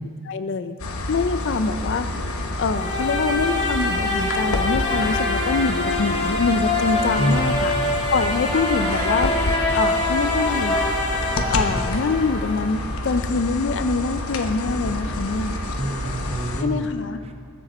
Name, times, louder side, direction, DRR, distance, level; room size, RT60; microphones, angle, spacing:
voice 1, 0.3-0.7 1.1-2.3 2.6-7.7 8.1-9.3 9.7-10.9 11.5-15.6 16.6-17.2, left 4 dB, 55° left, 11 dB, 0.4 m, -24 dB
sound 1, 0.8-16.6, left 1 dB, 80° left, 1.0 m, -28 dB
sound 2, 2.7-12.7, left 2 dB, 25° left, 1.8 m, -25 dB
voice 2, 7.2-7.6 15.8-16.9 17.2-17.3, equal, 30° right, 4 dB, 0.8 m, -26 dB
21.0 x 7.8 x 4.2 m, 2.4 s
head